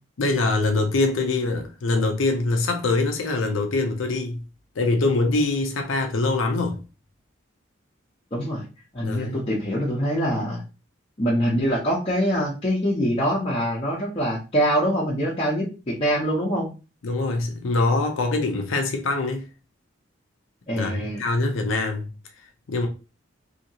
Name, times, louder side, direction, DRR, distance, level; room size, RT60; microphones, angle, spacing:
voice 1, 0.2-4.4 4.8-6.8 9.0-9.4 17.0-19.5 20.8-22.0 22.7-22.9, left 3 dB, 85° left, 0.5 m, -23 dB
voice 2, 8.3-8.6 8.9-10.6 11.2-16.7 20.7-21.2, equal, 30° left, 0.7 m, -24 dB
2.8 x 2.8 x 2.7 m
head